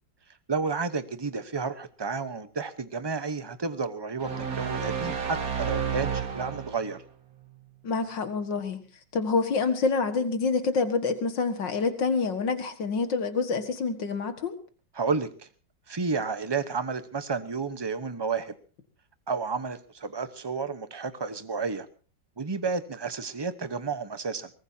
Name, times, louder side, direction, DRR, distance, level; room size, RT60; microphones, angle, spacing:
voice 1, 0.5-7.0 14.9-15.5 15.9-18.5 19.3-21.9 22.4-24.5, right 4 dB, 20° right, 12 dB, 0.7 m, -31 dB
sound 1, 4.2-7.0, right 7 dB, 50° right, 2.3 m, -31 dB
voice 2, 7.8-8.8 9.1-14.6, left 4 dB, 75° left, 9 dB, 2.4 m, -27 dB
22.5 x 19.5 x 2.8 m, 0.38 s
omnidirectional pair, 2.0 m